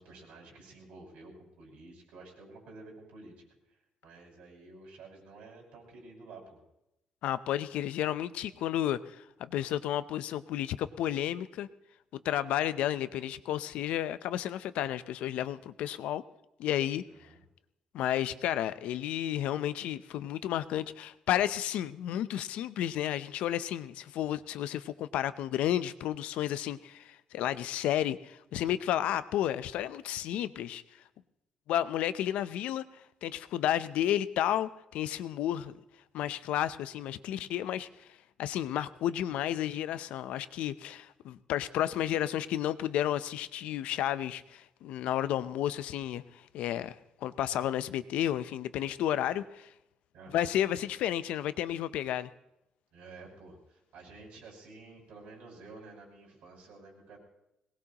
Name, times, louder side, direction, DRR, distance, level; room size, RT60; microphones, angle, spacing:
voice 1, 0.0-6.6 17.1-17.4 50.1-50.5 52.9-57.2, right 3 dB, 80° right, -2 dB, 5.8 m, -51 dB
voice 2, 7.2-11.7 12.2-16.2 16.6-17.0 17.9-30.8 31.7-35.8 36.1-49.7 50.3-52.3, left 11 dB, 85° left, 14 dB, 0.6 m, -32 dB
22.0 x 19.0 x 2.9 m, 0.88 s
cardioid pair, 175°, 2 cm